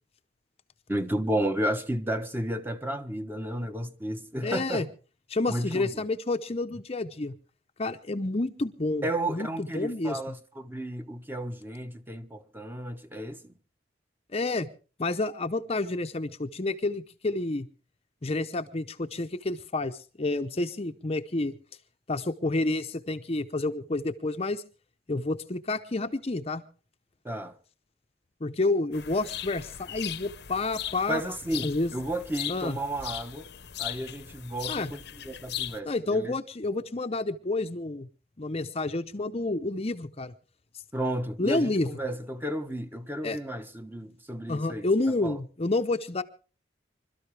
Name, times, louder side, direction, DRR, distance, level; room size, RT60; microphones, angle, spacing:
voice 1, 0.9-4.9 5.5-6.0 9.0-13.5 27.2-27.5 31.1-33.5 33.8-36.4 40.9-44.8 45.2-45.4, right 1 dB, 10° right, 1.1 m, -32 dB
voice 2, 4.4-4.9 5.3-7.4 7.8-10.2 14.3-14.7 15.0-17.7 18.2-21.6 22.1-24.6 25.1-26.6 28.4-31.2 31.6-31.9 32.5-32.8 34.7-34.9 35.8-38.1 38.4-40.3 41.4-41.9 43.2-43.4 44.5-46.2, left 2 dB, 35° left, 0.7 m, -29 dB
sound 1, 28.9-35.8, left 11 dB, 60° left, 0.8 m, -38 dB
26.0 x 13.0 x 3.3 m
head